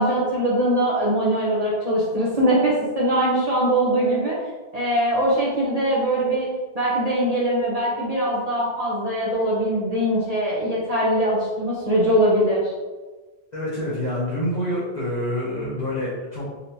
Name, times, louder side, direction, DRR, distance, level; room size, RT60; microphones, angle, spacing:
voice 1, 0.0-4.4 4.7-6.5 6.7-12.7, right 1 dB, 40° right, -6 dB, 0.8 m, -22 dB
voice 2, 13.5-16.4, left 1 dB, 45° left, -10 dB, 1.1 m, -27 dB
4.1 x 2.9 x 2.7 m, 1.3 s
omnidirectional pair, 1.1 m